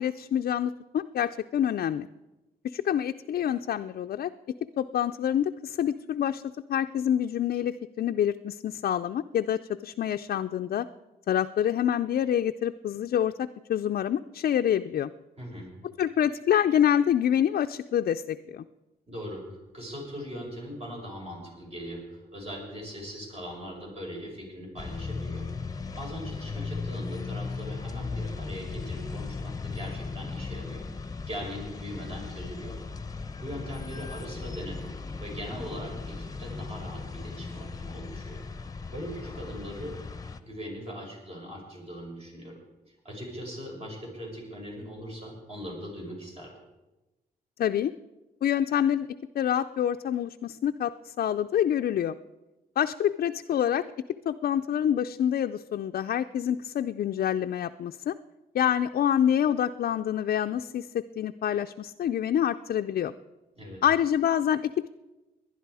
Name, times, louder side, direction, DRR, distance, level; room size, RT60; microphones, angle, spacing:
voice 1, 0.0-2.1 2.6-4.3 4.8-6.4 6.7-10.9 11.3-15.1 16.0-18.6 47.6-47.9 48.4-49.1 49.3-52.2 52.8-53.8 54.3-58.1 58.5-63.1 63.8-64.9, left 10 dB, 65° left, 6 dB, 0.4 m, -27 dB
voice 2, 15.4-15.7 19.1-19.4 19.7-25.4 26.0-30.8 31.3-32.8 33.4-34.9 35.2-38.4 38.9-39.9 40.4-42.6 43.0-46.5 63.6-63.8, equal, 40° right, -1 dB, 6.0 m, -40 dB
sound 1, 24.8-40.4, left 4 dB, 20° left, 0.8 m, -37 dB
19.5 x 11.0 x 4.8 m, 1.0 s
cardioid pair, 105°, 16 cm